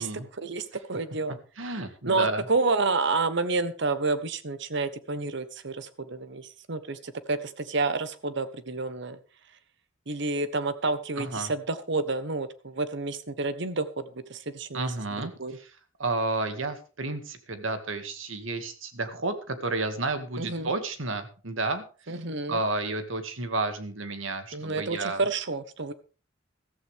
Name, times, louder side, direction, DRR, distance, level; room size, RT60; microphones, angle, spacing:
voice 1, 0.4-1.4 2.1-9.2 10.1-14.0 14.3-14.9 15.4-15.6 20.4-20.7 22.1-22.6 24.5-25.9, right 3 dB, 60° right, 12 dB, 1.2 m, -29 dB
voice 2, 1.6-2.5 11.2-11.5 14.7-15.7 16.0-22.2 22.5-25.2, right 2 dB, 80° right, 8 dB, 2.1 m, -31 dB
14.5 x 14.0 x 3.5 m, 0.35 s
head